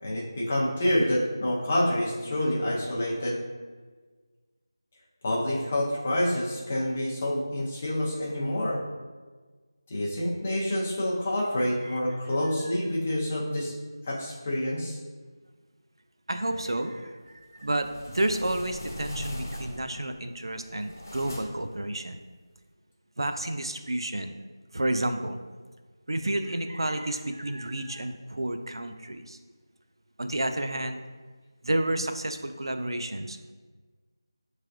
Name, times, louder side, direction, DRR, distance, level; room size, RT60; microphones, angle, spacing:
voice 1, 0.0-3.4 5.2-8.8 9.9-13.8 14.0-15.0, left 1 dB, 15° left, -5 dB, 0.5 m, -27 dB
voice 2, 11.8-12.2 16.3-22.2 23.2-24.3 24.7-25.4 26.1-29.4 30.2-31.0 31.6-33.4, right 1 dB, 85° right, 7 dB, 0.4 m, -30 dB
sound 1, 17.5-20.0 20.5-21.7, left 1 dB, 35° left, 0.9 m, -40 dB
6.6 x 3.2 x 2.5 m, 1.4 s
figure-of-eight pair, 180°, 2 cm